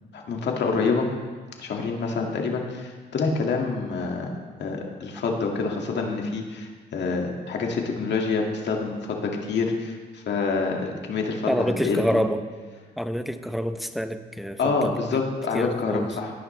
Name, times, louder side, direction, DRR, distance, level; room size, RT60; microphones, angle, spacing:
voice 1, 0.1-1.1 1.6-4.3 4.6-12.2 14.6-16.3, left 4 dB, 60° left, 1 dB, 2.1 m, -27 dB
voice 2, 11.5-12.4 13.0-15.2 15.5-16.2, equal, ahead, 8 dB, 0.7 m, -27 dB
17.0 x 9.9 x 3.3 m, 1.5 s
cardioid pair, 90°, 20 cm